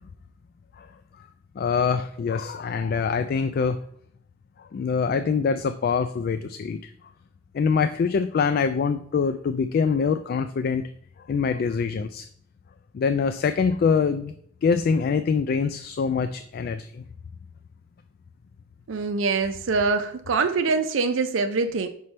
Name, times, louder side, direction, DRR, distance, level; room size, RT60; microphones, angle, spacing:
voice 1, 1.6-3.8 4.7-6.8 7.5-10.8 11.3-12.3 12.9-14.3 14.6-17.0, left 5 dB, 50° left, 11 dB, 0.3 m, -24 dB
voice 2, 18.9-21.9, right 4 dB, 90° right, 6 dB, 0.5 m, -24 dB
5.8 x 5.4 x 3.2 m, 0.67 s
head